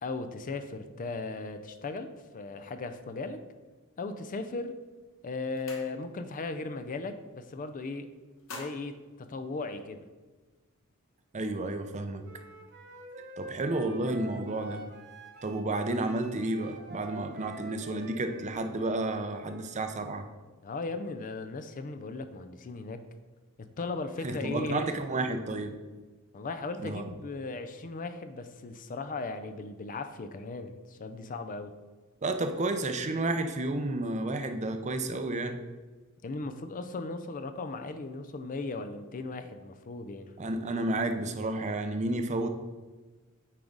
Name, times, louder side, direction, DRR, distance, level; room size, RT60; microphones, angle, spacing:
voice 1, 0.0-3.4 4.0-4.8 5.2-8.1 8.5-10.1 20.6-23.0 23.6-24.9 26.3-31.7 36.2-40.3, left 3 dB, 40° left, 9 dB, 0.5 m, -37 dB
sound 1, 4.7-4.9 5.2-6.4 6.7-7.0 7.3-7.9 8.2-10.1, left 2 dB, 65° left, 1.1 m, -48 dB
voice 2, 11.3-12.2 13.4-14.8 15.4-20.3 24.2-25.7 26.8-27.0 32.2-35.6 40.4-42.5, right 2 dB, 35° right, 7 dB, 0.6 m, -31 dB
Wind instrument woodwind instrument, 12.2-19.8, right 2 dB, 50° right, 1.0 m, -47 dB
8.8 x 4.7 x 3.9 m, 1.3 s
head